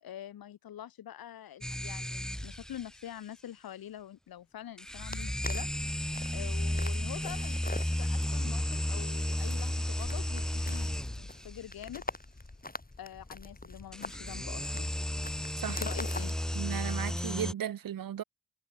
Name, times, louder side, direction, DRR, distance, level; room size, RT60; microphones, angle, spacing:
voice 1, 0.0-5.7 6.3-12.0 13.0-14.9 15.7-16.4, left 11 dB, 65° left, 0.8 m, -45 dB
sound 1, 1.6-2.9 4.8-11.5 13.9-17.5, equal, ahead, 0.4 m, -33 dB
sound 2, 5.1-17.2, left 2 dB, 20° left, 3.8 m, -45 dB
voice 2, 16.5-18.2, right 10 dB, 60° right, 0.8 m, -35 dB
supercardioid pair, 40°, 39 cm